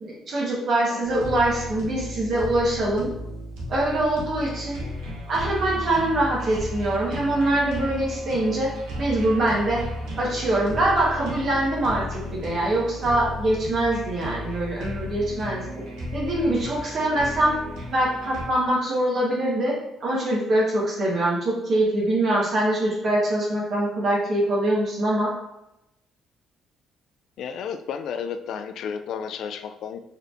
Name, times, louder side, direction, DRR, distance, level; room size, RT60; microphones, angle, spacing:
voice 1, 0.0-3.1 3.7-4.8 5.3-8.7 9.0-9.8 10.2-15.6 16.1-17.6 17.9-19.7 20.0-25.3, right 1 dB, 55° right, -4 dB, 1.3 m, -23 dB
voice 2, 0.9-1.3 27.4-30.0, left 7 dB, 70° left, 9 dB, 0.3 m, -32 dB
sound 1, 1.0-18.5, equal, 90° right, 1.0 m, -34 dB
4.2 x 3.4 x 2.6 m, 0.86 s
cardioid pair, 90°, 0 cm